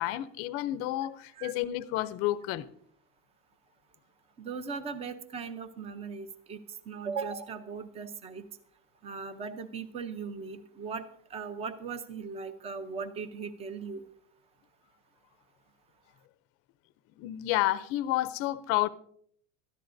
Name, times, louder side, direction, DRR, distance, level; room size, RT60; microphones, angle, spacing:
voice 1, 0.0-2.7 17.2-18.9, left 15 dB, 40° left, 0.6 m, -30 dB
voice 2, 4.4-8.4 9.0-14.0, right 5 dB, 15° right, 0.6 m, -38 dB
19.5 x 13.5 x 2.6 m
cardioid pair, 170°, 35 cm